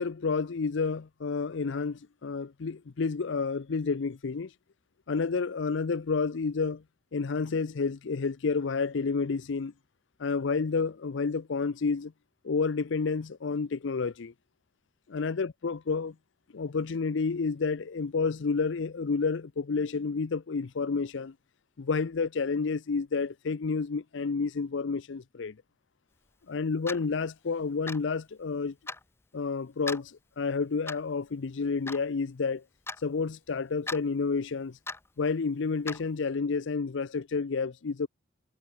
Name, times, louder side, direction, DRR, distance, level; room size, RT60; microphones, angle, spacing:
voice 1, 0.0-4.5 5.1-6.8 7.1-9.7 10.2-12.1 12.4-14.3 15.1-16.1 16.5-21.3 21.8-25.6 26.5-28.7 29.3-32.6 33.0-34.8 35.2-38.1, left 4 dB, 70° left, 0.5 m, -30 dB
Clock, 26.9-27.1 27.9-28.1 28.9-29.0 29.9-30.1 30.9-31.1 31.9-32.0 32.9-33.0 33.9-34.0 34.9-35.1 35.9-36.0, left 3 dB, 15° left, 0.9 m, -37 dB
head